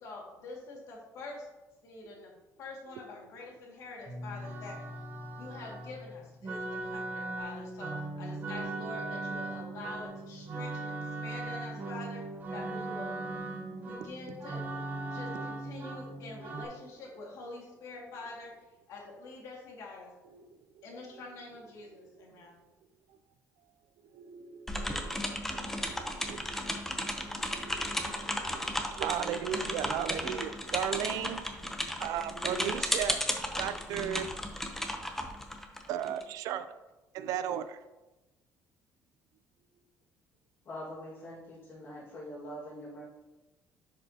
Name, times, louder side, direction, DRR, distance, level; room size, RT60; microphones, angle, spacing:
voice 1, 0.0-1.5 1.8-4.8 5.4-12.2 12.5-13.2 13.9-14.6 15.1-18.5 18.9-20.1 20.8-22.6, left 3 dB, 65° left, -2 dB, 2.1 m, -46 dB
sound 1, 4.1-16.6, right 2 dB, 30° right, 1.0 m, -39 dB
voice 2, 24.1-31.5 32.0-33.2 33.5-34.3 34.6-34.7 35.9-36.7 37.1-37.8, right 9 dB, 75° right, 12 dB, 0.5 m, -36 dB
sound 2, 24.7-36.2, left 1 dB, 5° left, 0.7 m, -34 dB
voice 3, 40.7-43.0, equal, 40° left, -7 dB, 1.9 m, -43 dB
10.5 x 5.1 x 2.9 m, 1.1 s
cardioid pair, 150°, 6 cm